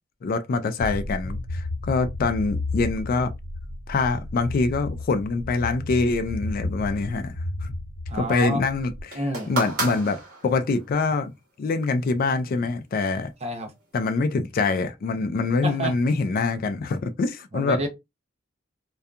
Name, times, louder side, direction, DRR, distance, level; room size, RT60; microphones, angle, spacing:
voice 1, 0.2-3.3 3.9-7.3 7.6-7.7 8.1-9.2 9.5-11.3 11.6-13.3 13.9-17.8, left 3 dB, 45° left, 0.3 m, -25 dB
sound 1, 0.8-9.0, left 2 dB, 75° left, 0.9 m, -33 dB
voice 2, 8.1-8.6 9.1-9.5 13.4-13.7 15.6-15.9 17.5-17.9, right 1 dB, 35° right, 0.6 m, -28 dB
sound 2, 9.1-10.9 11.8-11.9, right 3 dB, 50° right, 1.2 m, -31 dB
2.7 x 2.3 x 2.3 m
head